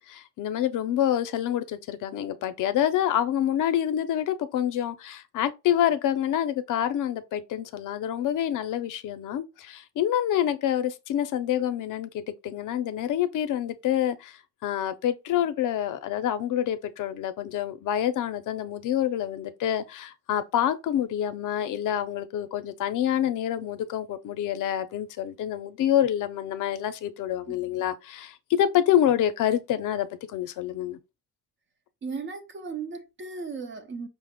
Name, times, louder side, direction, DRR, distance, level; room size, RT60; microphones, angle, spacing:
voice 1, 0.0-31.0, left 11 dB, 65° left, 0.5 m, -27 dB
voice 2, 32.0-34.1, right 4 dB, 35° right, 0.6 m, -36 dB
5.6 x 2.1 x 3.5 m
cardioid pair, 175°, 33 cm